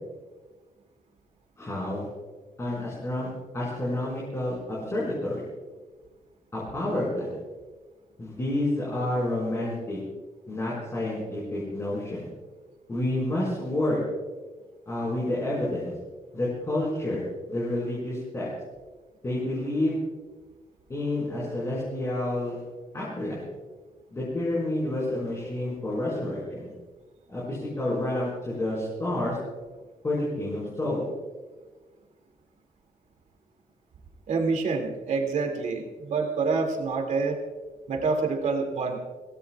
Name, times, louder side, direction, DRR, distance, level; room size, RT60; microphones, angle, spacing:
voice 1, 1.6-2.1 2.6-3.3 3.5-5.4 6.5-7.4 8.2-10.0 10.5-12.3 12.9-14.0 14.9-15.9 16.3-17.2 17.5-18.5 19.2-20.0 20.9-22.6 22.9-23.4 24.1-26.7 27.3-29.4 30.0-31.0, left 1 dB, 20° left, -8 dB, 5.2 m, -29 dB
voice 2, 34.3-37.4 37.9-39.0, right 4 dB, 60° right, 2 dB, 2.6 m, -27 dB
26.0 x 18.0 x 2.4 m, 1.3 s
wide cardioid pair, 170°, 14 cm